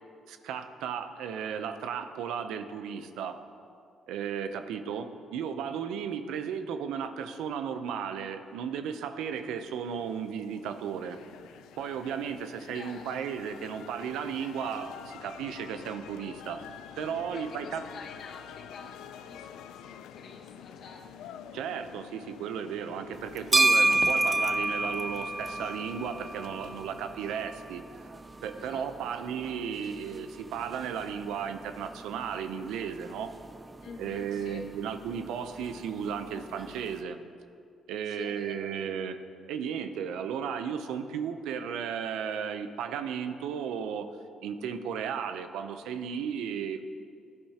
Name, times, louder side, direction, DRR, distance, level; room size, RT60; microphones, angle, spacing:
voice 1, 0.3-3.4 4.1-11.2 11.8-16.6 17.0-17.8 21.5-27.8 28.4-33.3 34.0-37.2 37.9-39.2 39.5-44.1 44.4-47.0, right 7 dB, 90° right, 9 dB, 0.7 m, -35 dB
sound 1, 8.5-27.4, left 8 dB, 90° left, 0.5 m, -48 dB
voice 2, 12.7-13.2 17.3-21.3 28.5-29.3 33.8-34.6 38.0-39.0, left 5 dB, 65° left, 2 dB, 1.4 m, -48 dB
sound 2, 23.1-37.0, right 2 dB, 25° right, 0.5 m, -32 dB
17.5 x 11.0 x 2.9 m, 2.4 s
cardioid pair, 90°, 0 cm